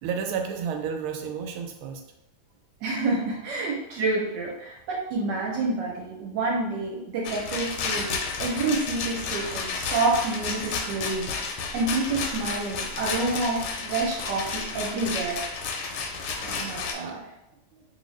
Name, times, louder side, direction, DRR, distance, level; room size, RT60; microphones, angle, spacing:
voice 1, 0.0-2.0 16.3-16.7 17.0-17.2 17.7-17.8, right 6 dB, 90° right, 4 dB, 1.4 m, -32 dB
voice 2, 2.8-15.4 15.8-16.1 16.4-17.3, right 3 dB, 70° right, -3 dB, 1.2 m, -28 dB
Rattle, 7.2-16.9, left 5 dB, 90° left, 1.4 m, -32 dB
2.9 x 2.8 x 3.1 m, 0.85 s
omnidirectional pair, 2.2 m